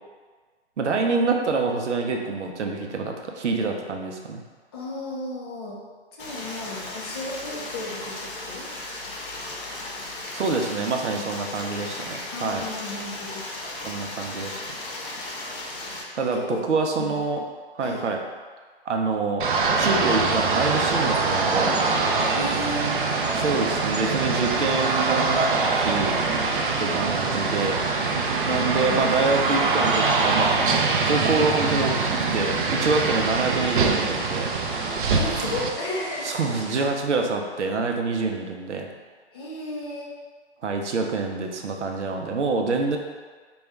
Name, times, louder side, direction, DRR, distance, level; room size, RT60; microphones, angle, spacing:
voice 1, 0.8-4.4 10.3-12.6 13.8-14.6 16.1-17.4 17.7-18.2 18.9-19.4 19.8-21.9 23.3-25.5 25.8-26.2 26.8-27.8 28.5-30.5 31.0-34.5 36.2-38.9 40.6-43.0, right 4 dB, 90° right, 3 dB, 0.6 m, -26 dB
voice 2, 4.7-5.8 6.1-8.7 11.1-11.2 11.6-11.7 12.3-13.4 16.2-16.6 17.0-17.2 17.8-18.0 22.1-23.1 28.5-29.0 35.1-36.3 36.8-36.9 39.3-40.1, left 2 dB, 25° left, -4 dB, 0.4 m, -34 dB
Stream, 6.2-16.0, left 2 dB, 50° left, 0.8 m, -36 dB
sound 1, 19.4-35.7, right 4 dB, 50° right, 0.5 m, -23 dB
sound 2, 20.0-36.9, right 2 dB, 65° right, 0.9 m, -39 dB
4.2 x 2.3 x 3.4 m, 1.5 s
hypercardioid pair, 140°, 34 cm